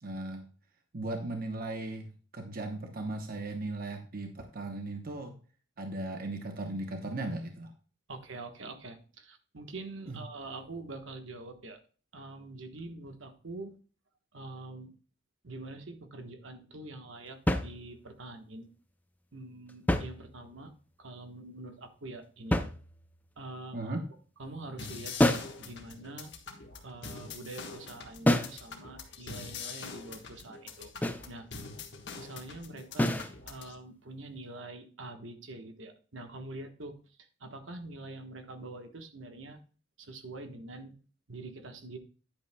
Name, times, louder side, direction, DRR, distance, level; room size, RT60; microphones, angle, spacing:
voice 1, 0.0-0.4 0.9-5.3 5.8-7.7 10.1-10.2 23.7-24.0, right 2 dB, 50° right, 4 dB, 0.9 m, -37 dB
voice 2, 8.1-11.8 12.1-13.8 14.3-14.9 15.4-18.7 19.3-20.7 21.0-22.6 23.4-24.0 24.4-26.3 26.8-30.9 31.3-31.5 32.2-33.2 33.5-37.0 37.4-39.6 40.0-40.9 41.3-42.0, right 2 dB, 70° right, 6 dB, 1.2 m, -45 dB
sound 1, 17.5-18.2 19.7-20.7 22.5-23.3 25.2-25.6 28.3-28.7 31.0-31.3 33.0-33.4, left 1 dB, 10° left, 0.6 m, -28 dB
sound 2, 24.8-33.7, left 5 dB, 60° left, 1.4 m, -44 dB
10.0 x 8.5 x 2.2 m, 0.39 s
head